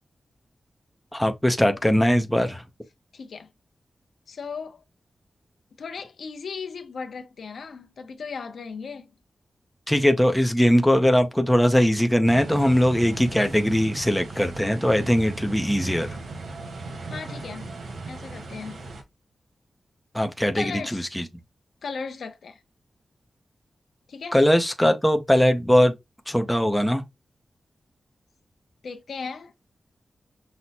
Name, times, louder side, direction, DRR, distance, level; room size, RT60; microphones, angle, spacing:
voice 1, 1.1-2.6 9.9-16.2 20.1-21.2 24.3-25.9 26.3-27.0, equal, 5° left, 0.6 m, -20 dB
voice 2, 3.1-3.5 4.3-4.8 5.8-9.1 17.1-17.7 18.1-18.8 20.5-21.1 21.8-22.6 24.1-24.4 28.8-29.5, left 5 dB, 80° left, 0.7 m, -36 dB
sound 1, 12.2-19.0, right 3 dB, 85° right, 1.1 m, -37 dB
5.9 x 2.1 x 4.1 m
wide cardioid pair, 125°, 0 cm